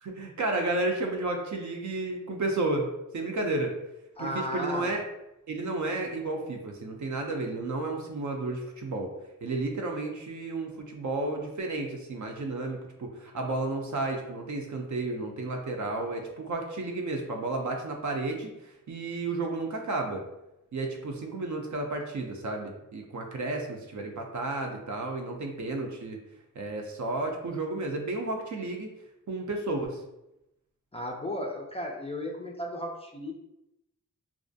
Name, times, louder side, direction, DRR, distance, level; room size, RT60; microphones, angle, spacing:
voice 1, 0.0-3.8 4.2-5.0 5.5-9.1 9.4-20.2 20.7-26.2 26.6-28.9 29.3-30.0, right 2 dB, 60° right, 2 dB, 0.5 m, -32 dB
voice 2, 4.2-4.9 30.9-33.3, left 1 dB, 20° left, 0 dB, 0.3 m, -34 dB
2.4 x 2.0 x 2.6 m, 0.88 s
cardioid pair, 60°, 34 cm